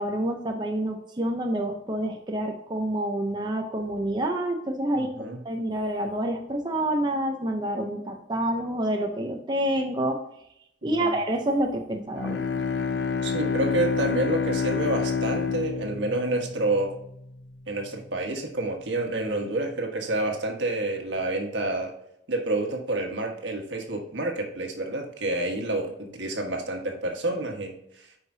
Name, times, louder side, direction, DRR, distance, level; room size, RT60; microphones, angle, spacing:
voice 1, 0.0-5.1 5.4-10.2 10.8-12.4, right 1 dB, 25° right, 2 dB, 0.7 m, -28 dB
voice 2, 4.9-5.4 10.8-11.1 13.2-16.9 17.7-21.9 22.3-27.7, right 2 dB, 75° right, 2 dB, 1.5 m, -28 dB
Bowed string instrument, 12.1-17.2, left 5 dB, 65° left, 0.5 m, -28 dB
9.3 x 4.9 x 2.8 m, 0.76 s
head